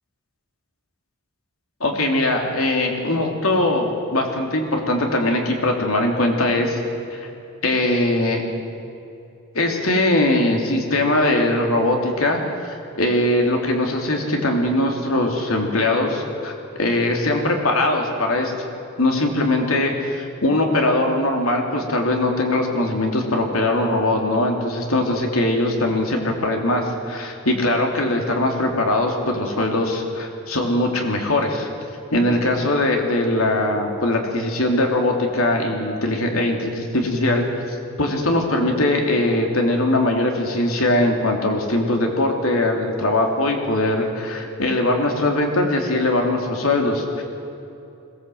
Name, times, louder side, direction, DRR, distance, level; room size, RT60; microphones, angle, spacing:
voice 1, 1.8-6.8 7.1-7.3 7.6-8.4 9.5-18.5 19.0-31.7 32.1-47.2, left 1 dB, 90° left, 2 dB, 3.1 m, -21 dB
21.5 x 17.5 x 7.9 m, 2.7 s
head